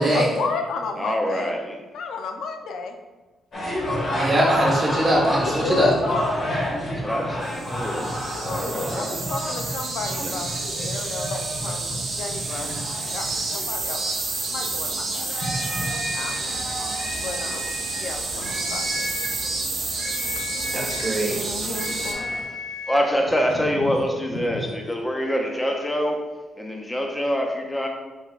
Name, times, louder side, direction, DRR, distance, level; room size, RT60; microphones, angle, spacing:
voice 1, 0.0-1.5 1.9-2.9 3.9-4.0 5.4-6.7 8.3-13.3 13.5-14.1 14.5-15.3 16.1-16.7 17.1-17.7 18.0-19.1 21.3-22.2 24.3-24.6, left 4 dB, 80° left, 5 dB, 0.5 m, -32 dB
voice 2, 1.0-1.8 5.0-5.3 6.9-8.2 8.4-9.2 10.2-10.4 22.1-22.5 22.9-26.2 26.6-27.9, equal, 10° left, 1 dB, 0.4 m, -26 dB
sound 1, 3.5-22.4, equal, 40° left, 1.3 m, -32 dB
voice 3, 4.1-5.9 20.7-21.4, right 1 dB, 20° right, -4 dB, 1.2 m, -21 dB
sound 2, 7.4-22.1, right 3 dB, 50° right, 0.9 m, -30 dB
sound 3, 15.3-16.4 16.9-18.1 18.4-19.4 20.0-21.2 21.7-23.1, left 2 dB, 60° left, 1.4 m, -34 dB
5.4 x 3.8 x 2.4 m, 1.2 s
wide cardioid pair, 175°, 0 cm